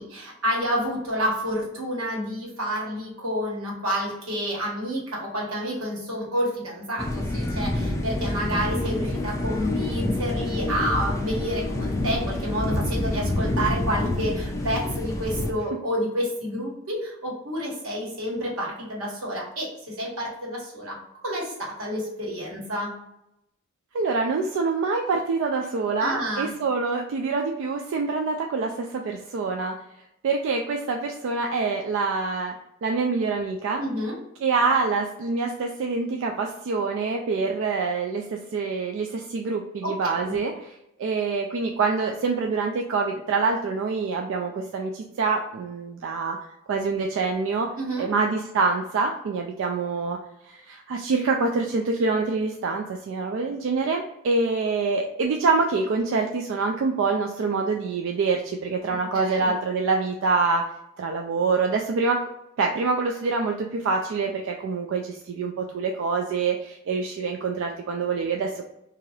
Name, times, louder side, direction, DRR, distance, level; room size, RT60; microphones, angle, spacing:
voice 1, 0.0-21.0 21.2-22.9 26.0-26.5 33.8-34.2 39.8-40.4 47.8-48.1 58.9-59.5, equal, 90° right, -3 dB, 1.2 m, -29 dB
sound 1, 7.0-15.5, left 1 dB, 15° left, 0.4 m, -27 dB
voice 2, 23.9-29.7 30.2-32.6 32.8-33.8 34.4-46.4 46.7-47.7 48.0-50.2 50.5-60.7 61.0-62.2 62.6-68.6, right 4 dB, 65° right, 2 dB, 0.3 m, -26 dB
2.7 x 2.4 x 3.1 m, 0.85 s
head